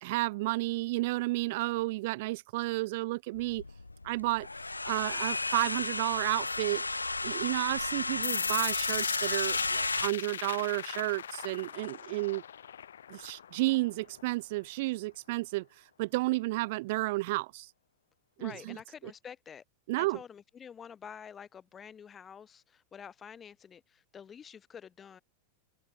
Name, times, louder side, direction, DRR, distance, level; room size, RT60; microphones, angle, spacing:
voice 1, 0.0-3.6 4.0-4.5 4.9-6.9 7.2-12.4 13.1-17.7 18.4-18.8 19.9-20.2, right 21 dB, 50° right, 0.5 m, -32 dB
sound 1, 3.3-10.1, left 3 dB, 80° left, 0.5 m, -33 dB
sound 2, 8.2-14.2, left 9 dB, 65° left, 1.9 m, -38 dB
voice 2, 8.2-8.6 18.4-19.6 20.0-25.2, left 7 dB, 20° left, 3.0 m, -48 dB
figure-of-eight pair, 90°, 0 cm